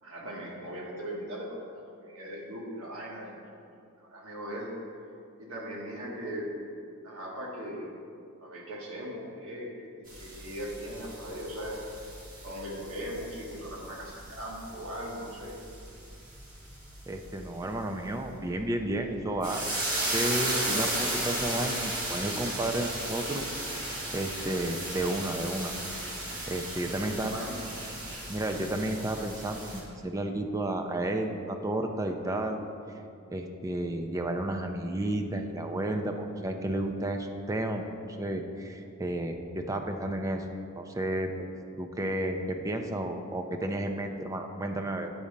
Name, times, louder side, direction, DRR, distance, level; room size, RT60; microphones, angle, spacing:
voice 1, 0.0-1.5 2.0-3.3 4.0-4.7 5.4-6.6 7.0-7.9 8.4-9.7 10.0-11.8 12.4-15.6 26.9-28.2, equal, 70° right, -3 dB, 1.5 m, -39 dB
sound 1, 10.1-29.8, right 1 dB, 40° right, 1.5 m, -35 dB
voice 2, 17.1-25.7 26.5-27.3 28.3-32.6 33.3-37.8 38.2-40.4 40.8-41.5 41.8-45.1, right 1 dB, 15° right, 4 dB, 0.4 m, -32 dB
8.6 x 4.1 x 5.1 m, 2.5 s
head